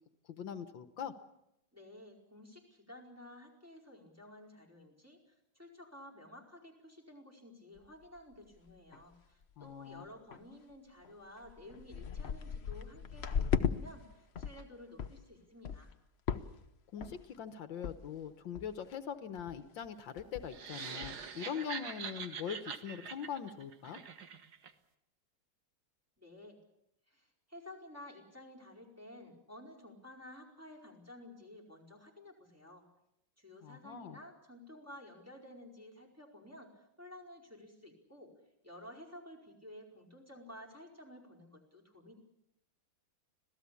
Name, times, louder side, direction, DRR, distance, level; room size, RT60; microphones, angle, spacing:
voice 1, 0.3-1.1 9.6-10.0 16.9-24.0 33.6-34.2, left 8 dB, 75° left, 10 dB, 1.8 m, -42 dB
voice 2, 1.7-5.2 5.5-15.9 26.2-26.6 27.1-32.8 33.4-38.3 38.6-42.1, left 1 dB, 5° right, -3 dB, 4.8 m, -53 dB
sound 1, 7.8-7.9 8.3-8.4 8.7-9.1 9.4-9.7 10.3-10.4 11.0-11.1 11.4-13.8 14.1-14.6 15.0-15.2 15.6-15.9 16.3-16.7 17.0-17.4 17.8-18.0 18.2-18.3 18.5-18.9 19.4-19.6 19.8-19.9 20.2-20.6 21.0-21.1, left 7 dB, 45° left, 0.9 m, -37 dB
sound 2, 20.5-24.7, right 6 dB, 55° right, 1.8 m, -44 dB
26.0 x 17.0 x 8.4 m, 0.83 s
omnidirectional pair, 2.1 m